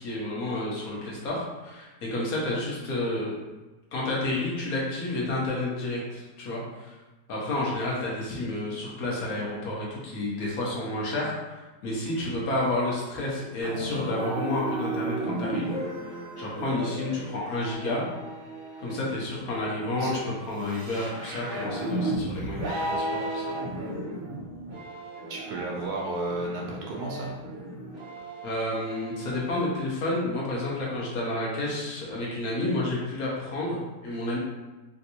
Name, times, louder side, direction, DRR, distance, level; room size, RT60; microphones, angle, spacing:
voice 1, 0.0-3.4 3.9-6.9 7.3-15.8 16.4-18.0 18.8-20.1 20.5-23.6 28.4-34.4, left 2 dB, 60° left, -5 dB, 1.2 m, -30 dB
sound 1, 13.6-29.6, right 1 dB, 45° right, 0.6 m, -35 dB
voice 2, 25.3-27.3, right 2 dB, 70° right, -2 dB, 1.1 m, -33 dB
3.4 x 2.5 x 2.8 m, 1.1 s
omnidirectional pair, 1.9 m